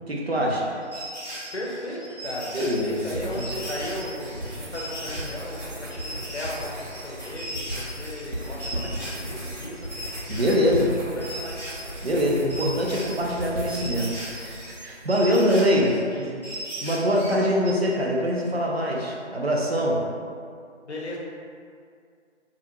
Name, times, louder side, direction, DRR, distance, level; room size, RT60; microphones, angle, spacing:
voice 1, 0.1-0.7 2.5-3.6 8.7-8.8 10.3-10.9 12.0-15.9 16.2-16.4 16.8-20.0, equal, 55° right, -2 dB, 0.5 m, -24 dB
sound 1, 0.7-11.0 11.2-17.7, right 1 dB, 35° right, 1.3 m, -39 dB
voice 2, 1.5-9.9 10.7-10.9 11.1-11.7 16.1-16.3 20.8-21.2, left 1 dB, 65° left, -3 dB, 0.7 m, -36 dB
sound 2, 2.3-15.0, right 1 dB, 80° right, 0.8 m, -36 dB
2.4 x 2.3 x 2.8 m, 2.3 s
figure-of-eight pair, 170°, 36 cm